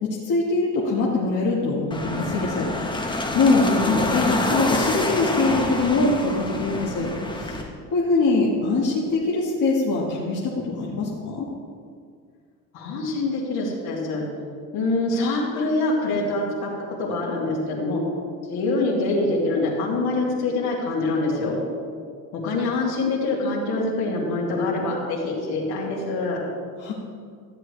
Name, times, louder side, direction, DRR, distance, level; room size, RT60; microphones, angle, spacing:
voice 1, 0.0-2.7 2.9-7.1 7.4-11.5 26.8-26.9, left 3 dB, 50° left, -5 dB, 1.7 m, -23 dB
sound 1, 1.9-7.6, left 1 dB, 10° left, 1.3 m, -27 dB
voice 2, 3.5-4.0 12.7-14.2 14.7-16.7 17.0-18.0 18.5-21.6 22.3-26.4, left 2 dB, 65° left, -3 dB, 2.7 m, -25 dB
13.5 x 7.8 x 3.4 m, 2.1 s
supercardioid pair, 85°, 40 cm